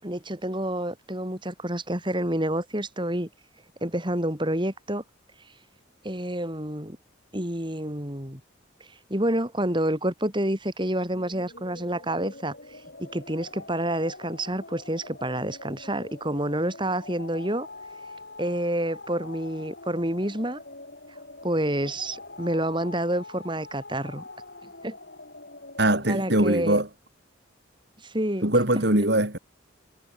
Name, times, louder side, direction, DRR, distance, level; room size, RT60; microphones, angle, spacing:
voice 1, 0.0-3.3 3.8-5.0 6.0-7.0 7.3-8.4 9.1-17.7 18.4-20.6 21.4-24.2 24.8-25.0 26.1-26.8 28.0-28.4, right 1 dB, 25° right, 5.8 m, -28 dB
sound 1, 11.1-26.4, left 2 dB, 55° left, 7.3 m, -44 dB
voice 2, 25.8-26.9 28.4-29.4, right 1 dB, 55° right, 5.0 m, -22 dB
head